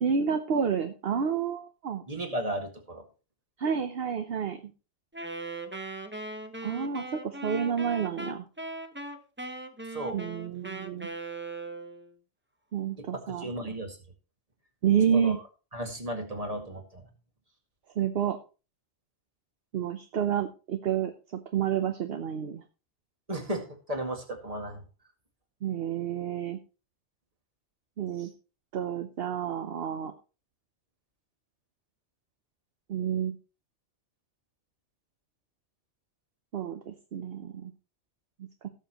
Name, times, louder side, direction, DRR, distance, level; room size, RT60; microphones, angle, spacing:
voice 1, 0.0-2.0 3.6-4.7 6.6-8.4 10.1-11.1 12.7-13.7 14.8-15.4 18.0-18.4 19.7-22.6 25.6-26.6 28.0-28.3 28.7-30.1 32.9-33.4 36.5-37.7 38.4-38.7, right 8 dB, 60° right, 8 dB, 1.0 m, -29 dB
voice 2, 2.1-3.0 9.9-10.2 13.1-14.0 15.1-15.4 15.7-17.1 23.3-24.8, right 1 dB, 30° right, 3 dB, 2.1 m, -34 dB
Wind instrument woodwind instrument, 5.1-12.1, right 2 dB, 10° right, 0.7 m, -39 dB
17.5 x 6.9 x 3.0 m, 0.33 s
omnidirectional pair, 1.2 m